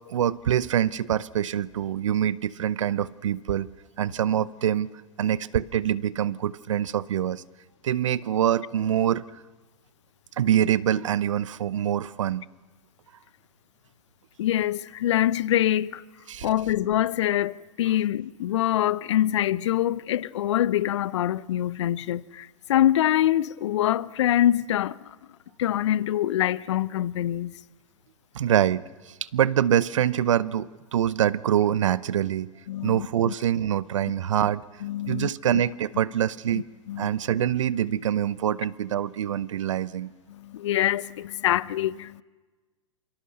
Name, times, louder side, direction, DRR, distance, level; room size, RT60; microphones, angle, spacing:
voice 1, 0.1-3.7 4.0-4.9 5.2-7.4 7.8-9.2 10.4-12.4 16.3-16.5 28.3-32.5 32.8-34.6 35.1-36.7 37.0-40.1, right 10 dB, 70° right, 0.8 m, -25 dB
voice 2, 14.4-16.0 16.4-25.2 25.6-27.6 32.7-33.3 34.8-35.3 36.5-37.1 40.3-42.2, left 12 dB, 60° left, 0.7 m, -25 dB
28.0 x 25.0 x 6.6 m
figure-of-eight pair, 105°, 17 cm